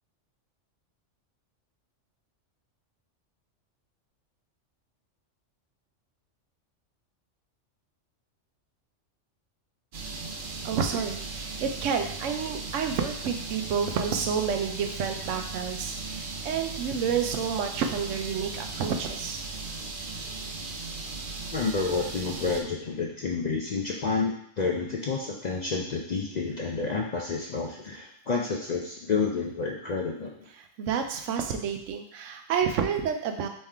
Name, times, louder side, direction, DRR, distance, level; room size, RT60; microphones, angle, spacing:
sound 1, 9.9-22.6, right 3 dB, 55° right, 0.7 m, -37 dB
voice 1, 10.6-19.4 30.6-33.5, right 7 dB, 85° right, 5 dB, 0.9 m, -29 dB
voice 2, 21.5-30.3, left 4 dB, 60° left, -1 dB, 0.4 m, -29 dB
3.6 x 3.2 x 4.3 m, 0.73 s
omnidirectional pair, 1.3 m